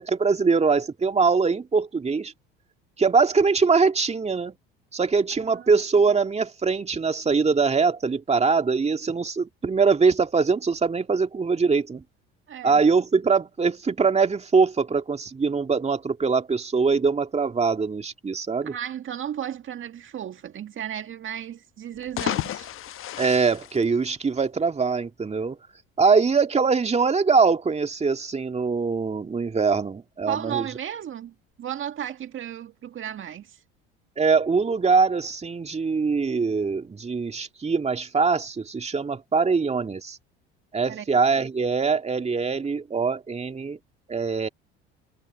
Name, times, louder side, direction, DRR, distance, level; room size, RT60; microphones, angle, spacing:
voice 1, 0.0-2.3 3.0-4.5 4.9-12.0 12.6-18.8 23.2-25.6 26.0-30.7 34.2-40.2 40.7-43.8 44.1-44.5, right 5 dB, 20° right, 2.3 m, -22 dB
voice 2, 12.5-12.8 18.7-22.7 30.3-33.6 40.9-41.1, right 10 dB, 45° right, 1.9 m, -34 dB
sound 1, 21.9-24.6, left 12 dB, 45° left, 1.2 m, -32 dB
hypercardioid pair, 70°, 29 cm